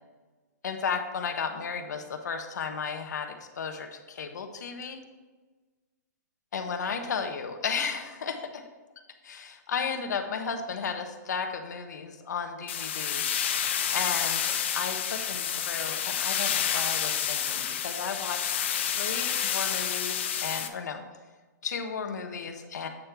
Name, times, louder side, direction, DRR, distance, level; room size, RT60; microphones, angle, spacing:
voice 1, 0.6-5.0 6.5-8.6 9.2-13.2 13.9-18.5 18.8-21.0 21.6-22.9, left 6 dB, 65° left, 6 dB, 1.0 m, -34 dB
sound 1, 12.7-20.7, left 9 dB, 40° left, 0.5 m, -29 dB
8.3 x 3.4 x 5.9 m, 1.3 s
hypercardioid pair, 180°, 10 cm